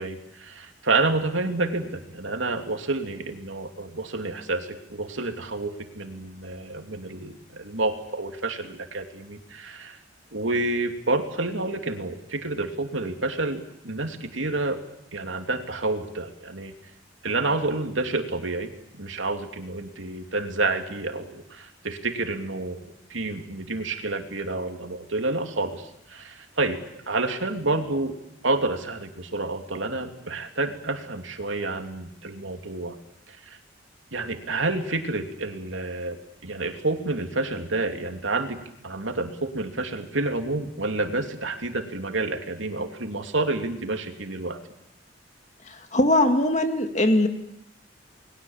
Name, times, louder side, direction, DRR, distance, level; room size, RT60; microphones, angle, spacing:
voice 1, 0.0-10.0 10.3-14.8 15.1-16.7 17.2-28.1 28.4-33.0 33.3-33.6 34.1-44.6, right 2 dB, 90° right, 5 dB, 2.9 m, -29 dB
voice 2, 45.9-47.3, left 1 dB, 40° left, 6 dB, 2.3 m, -20 dB
30.0 x 21.5 x 7.3 m, 0.78 s
head